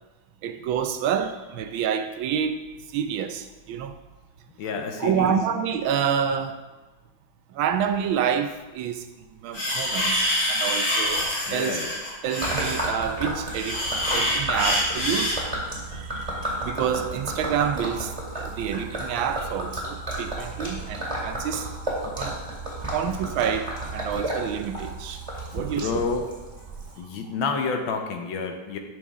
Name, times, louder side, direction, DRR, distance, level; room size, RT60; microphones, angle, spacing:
voice 1, 0.4-4.0 5.0-6.6 7.5-9.1 9.4-11.8 12.2-15.4 15.9-21.8 22.1-22.4 22.9-25.9 26.9-27.1, right 8 dB, 90° right, 9 dB, 1.5 m, -28 dB
voice 2, 4.6-5.4 11.5-11.9 25.6-26.3 27.0-28.8, left 4 dB, 80° left, 4 dB, 1.7 m, -29 dB
sound 1, 9.5-15.4, left 1 dB, 50° left, 2.9 m, -26 dB
Gurgling / Liquid, 12.4-27.0, right 1 dB, 15° right, 2.4 m, -32 dB
10.5 x 6.3 x 3.6 m, 1.2 s
omnidirectional pair, 2.1 m